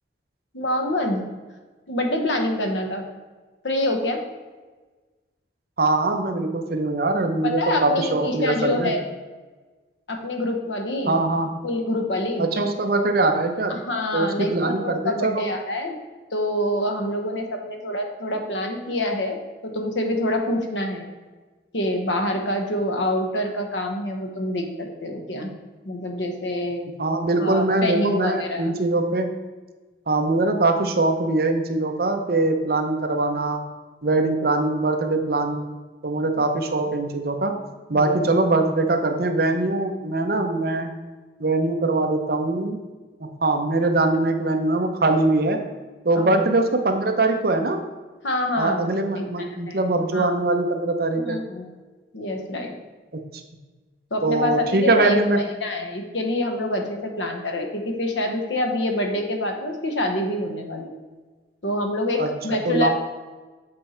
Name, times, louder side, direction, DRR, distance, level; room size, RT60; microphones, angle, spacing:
voice 1, 0.5-1.2 1.9-3.0 3.6-4.2 7.4-9.0 10.1-11.2 11.6-12.5 13.7-16.0 16.3-19.4 19.6-21.1 21.7-25.5 25.8-26.9 27.4-28.7 37.9-38.3 46.2-46.3 48.2-48.9 49.2-50.4 51.2-51.7 52.1-52.7 54.1-60.9 61.6-62.9, left 1 dB, 80° left, 3 dB, 1.1 m, -26 dB
voice 2, 5.8-8.9 11.1-11.6 12.4-13.7 14.1-15.5 27.0-29.4 30.1-33.6 34.0-35.7 36.0-37.6 37.9-40.9 41.4-42.8 43.2-45.6 46.0-47.8 48.5-51.4 53.1-53.2 54.2-55.4 62.2-62.9, right 2 dB, 55° right, 5 dB, 0.7 m, -22 dB
7.8 x 4.4 x 4.3 m, 1.3 s
head